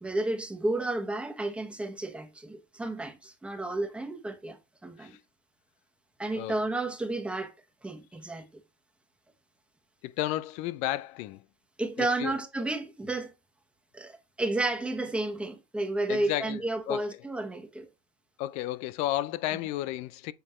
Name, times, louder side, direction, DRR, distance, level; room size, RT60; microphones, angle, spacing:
voice 1, 0.0-5.2 6.2-7.5 7.8-8.5 11.8-13.3 13.9-17.9, right 2 dB, 10° right, 1.4 m, -32 dB
voice 2, 10.0-11.4 12.0-12.4 16.1-17.2 18.4-20.3, left 15 dB, 60° left, 0.5 m, -33 dB
7.8 x 4.3 x 3.1 m
supercardioid pair, 105°, 13 cm